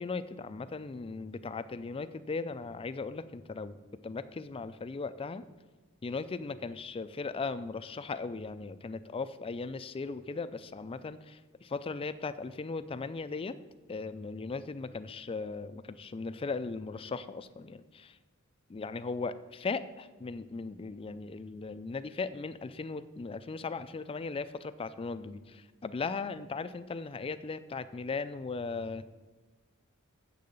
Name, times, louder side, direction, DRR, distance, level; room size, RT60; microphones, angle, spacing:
voice 1, 0.0-3.8 4.0-5.5 6.0-13.6 13.9-18.2 18.7-29.0, left 4 dB, 25° left, 13 dB, 0.3 m, -38 dB
7.4 x 6.6 x 6.9 m, 1.3 s
head